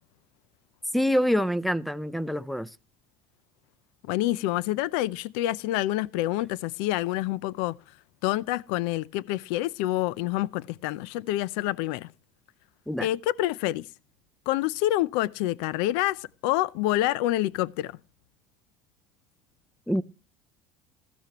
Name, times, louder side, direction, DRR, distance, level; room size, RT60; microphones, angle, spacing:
voice 1, 0.9-2.7 12.9-13.1 19.9-20.0, equal, ahead, 0.6 m, -25 dB
voice 2, 4.0-7.8 8.2-12.1 13.0-13.9 14.5-18.0, left 15 dB, 80° left, 0.5 m, -27 dB
15.0 x 12.5 x 3.0 m
supercardioid pair, 125°, 5 cm